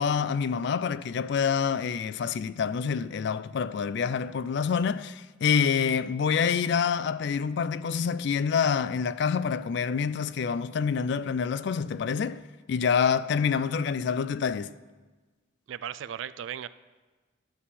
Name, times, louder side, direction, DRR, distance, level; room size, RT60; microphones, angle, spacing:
voice 1, 0.0-12.4 12.7-14.7, left 6 dB, 60° left, 0.3 m, -27 dB
voice 2, 15.7-16.7, right 9 dB, 65° right, 0.3 m, -36 dB
11.5 x 4.2 x 7.6 m
head